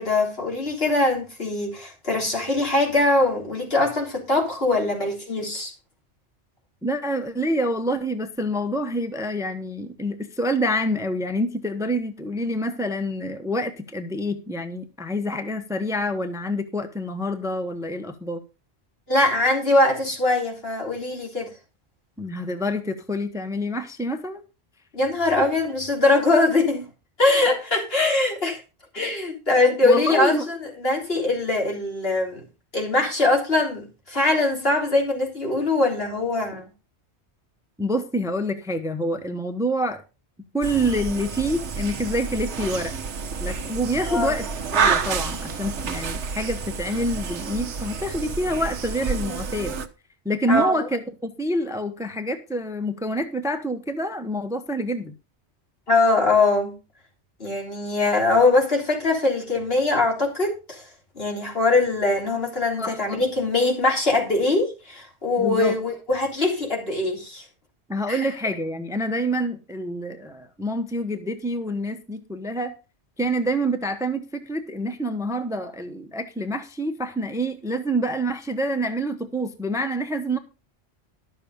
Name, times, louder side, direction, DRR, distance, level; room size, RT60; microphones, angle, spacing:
voice 1, 0.0-5.7 19.1-21.5 24.9-26.9 27.2-28.6 28.9-32.4 32.7-36.7 44.1-44.3 50.5-50.9 55.9-56.7 57.4-60.9 61.2-67.5 68.1-68.3, left 2 dB, 60° left, 3.8 m, -22 dB
voice 2, 6.8-18.4 22.2-24.4 29.8-30.5 37.8-40.0 40.5-43.0 43.4-44.5 44.7-49.8 50.2-55.1 62.8-63.0 65.4-65.8 67.9-72.7 73.2-80.4, equal, 5° right, 0.9 m, -27 dB
sound 1, 40.6-49.9, right 5 dB, 85° right, 1.3 m, -29 dB
12.0 x 6.9 x 5.2 m
omnidirectional pair, 1.1 m